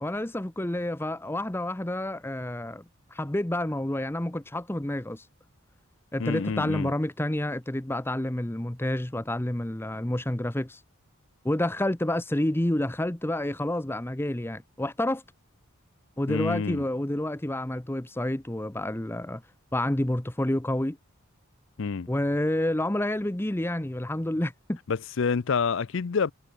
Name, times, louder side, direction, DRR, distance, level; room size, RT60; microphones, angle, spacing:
voice 1, 0.0-2.8 3.1-5.2 6.1-10.8 11.4-15.2 16.2-19.4 19.7-21.0 22.1-24.8, left 1 dB, 10° left, 0.7 m, -29 dB
voice 2, 6.2-6.9 16.3-16.8 21.8-22.1 24.9-26.3, left 5 dB, 60° left, 0.5 m, -28 dB
head